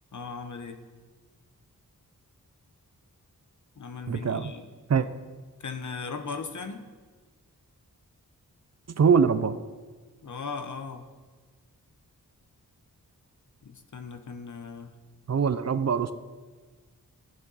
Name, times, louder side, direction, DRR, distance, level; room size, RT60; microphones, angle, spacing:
voice 1, 0.1-0.8 3.8-4.7 5.6-6.9 10.2-11.1 13.6-15.0, left 5 dB, 55° left, 7 dB, 1.0 m, -38 dB
voice 2, 4.1-4.5 4.9-5.1 9.0-9.6 15.3-16.1, right 6 dB, 45° right, 12 dB, 0.6 m, -23 dB
13.0 x 8.2 x 4.1 m, 1.4 s
wide cardioid pair, 65°, 35 cm